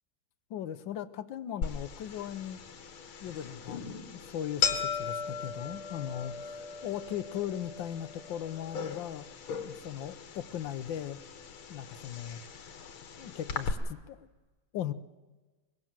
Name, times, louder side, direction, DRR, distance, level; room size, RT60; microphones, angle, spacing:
voice 1, 0.5-2.6 3.2-6.5 6.8-9.3 9.6-11.2 11.7-12.4 13.2-14.3 14.7-14.9, left 10 dB, 70° left, 10 dB, 1.6 m, -38 dB
sound 1, 1.6-13.7, left 6 dB, 85° left, 2.4 m, -38 dB
24.0 x 22.0 x 7.5 m, 1.2 s
omnidirectional pair, 2.2 m